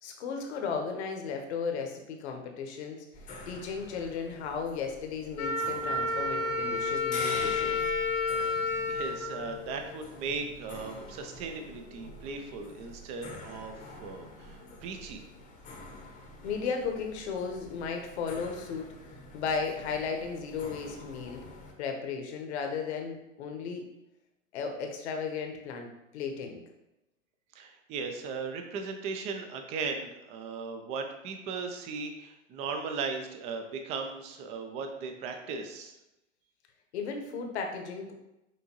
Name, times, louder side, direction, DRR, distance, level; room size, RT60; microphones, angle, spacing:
voice 1, 0.0-3.0 3.5-7.8 16.4-18.9 19.3-21.4 21.8-23.8 24.5-25.9 26.1-26.6 36.9-38.1, left 5 dB, 60° left, 3 dB, 1.0 m, -35 dB
sound 1, 3.1-21.7, left 2 dB, 20° left, 0.8 m, -46 dB
Wind instrument woodwind instrument, 5.4-10.2, left 3 dB, 90° left, 0.8 m, -31 dB
voice 2, 8.6-15.2 27.5-35.9, right 4 dB, 20° right, 5 dB, 0.3 m, -37 dB
6.2 x 2.6 x 2.9 m, 0.94 s
hypercardioid pair, 110°, 38 cm